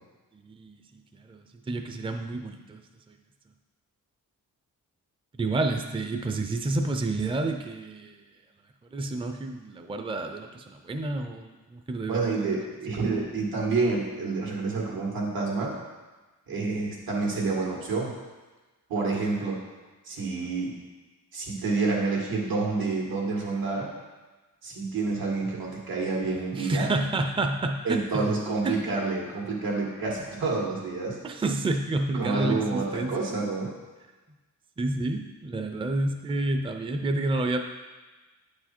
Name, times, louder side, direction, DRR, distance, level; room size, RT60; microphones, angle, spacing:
voice 1, 0.3-0.8 1.1-2.8 3.1-3.2 5.4-8.2 8.9-12.5 26.5-28.3 28.6-28.8 31.2-33.3 34.8-37.6, right 2 dB, 15° right, 5 dB, 0.5 m, -29 dB
voice 2, 12.1-15.7 16.5-18.1 18.9-19.6 20.1-20.7 21.3-23.9 24.6-26.9 27.8-31.2 32.1-33.7, right 3 dB, 85° right, -2 dB, 1.9 m, -28 dB
8.8 x 4.8 x 4.4 m, 1.2 s
cardioid pair, 95°, 34 cm